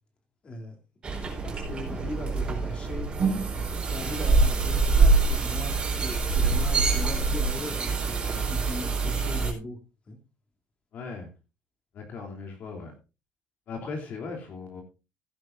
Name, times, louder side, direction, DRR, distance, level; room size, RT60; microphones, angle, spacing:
voice 1, 0.4-0.7 1.4-3.1 3.9-9.8 10.1-10.2, left 2 dB, 30° left, 4 dB, 3.2 m, -38 dB
sound 1, 1.0-9.5, right 3 dB, 25° right, 4.5 m, -25 dB
voice 2, 10.9-11.3 11.9-12.9 13.7-14.8, left 4 dB, 50° left, 2 dB, 3.2 m, -38 dB
15.5 x 11.0 x 2.6 m, 0.29 s
cardioid pair, 145°, 4 cm